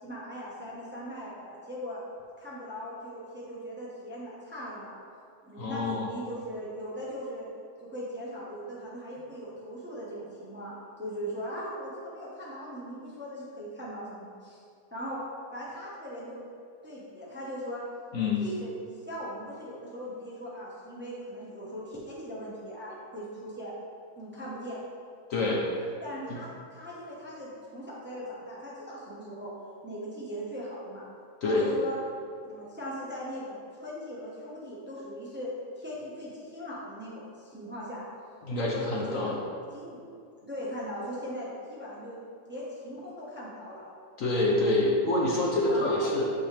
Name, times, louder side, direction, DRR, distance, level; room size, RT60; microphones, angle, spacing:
voice 1, 0.0-2.0 2.4-5.0 5.4-7.5 7.8-10.7 11.0-14.6 14.9-15.2 15.5-16.4 16.8-17.8 18.4-23.7 24.2-24.8 26.0-29.5 29.8-31.1 31.4-32.0 32.4-35.5 35.7-38.0 38.7-39.4 39.7-40.0 40.4-42.2 42.5-43.8 45.7-46.1, equal, 10° right, -6 dB, 0.9 m, -39 dB
voice 2, 5.6-6.1 18.1-18.4 25.3-25.6 31.4-31.7 38.5-39.4 44.2-46.2, left 2 dB, 60° left, -3 dB, 1.0 m, -26 dB
7.1 x 5.8 x 3.4 m, 2.4 s
omnidirectional pair, 1.8 m